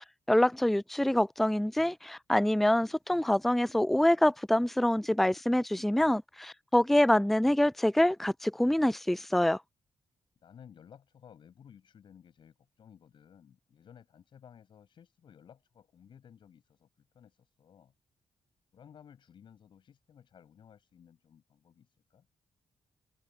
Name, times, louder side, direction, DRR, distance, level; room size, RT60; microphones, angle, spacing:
voice 1, 0.0-9.6, left 1 dB, ahead, 0.4 m, -26 dB
voice 2, 10.4-17.9 18.7-22.3, left 8 dB, 65° left, 7.0 m, -57 dB
supercardioid pair, 45°, 9 cm